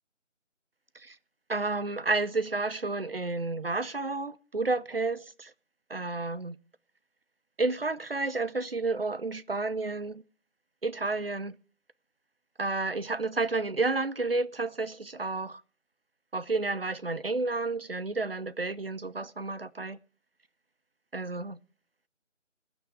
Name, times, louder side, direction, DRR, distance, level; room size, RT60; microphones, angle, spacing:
voice 1, 1.5-5.5 5.9-6.5 7.6-10.2 10.8-11.5 12.6-15.6 16.3-20.0 21.1-21.6, right 3 dB, 50° right, 0.6 m, -31 dB
18.0 x 6.1 x 8.1 m
figure-of-eight pair, 170°, 37 cm